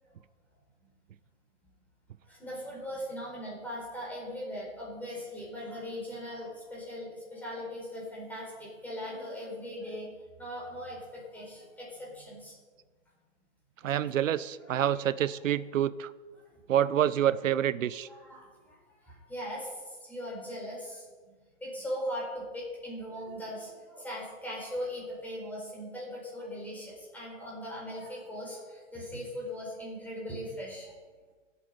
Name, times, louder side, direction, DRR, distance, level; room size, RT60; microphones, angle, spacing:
voice 1, 2.2-10.1 10.4-12.6 13.8-13.9 14.7-14.9 18.1-18.8 19.0-21.3 21.6-30.9, equal, 5° left, -4 dB, 4.4 m, -39 dB
voice 2, 13.8-16.1 16.7-18.1, right 10 dB, 85° right, 17 dB, 0.8 m, -27 dB
23.5 x 8.6 x 5.4 m, 1.4 s
hypercardioid pair, 160°, 38 cm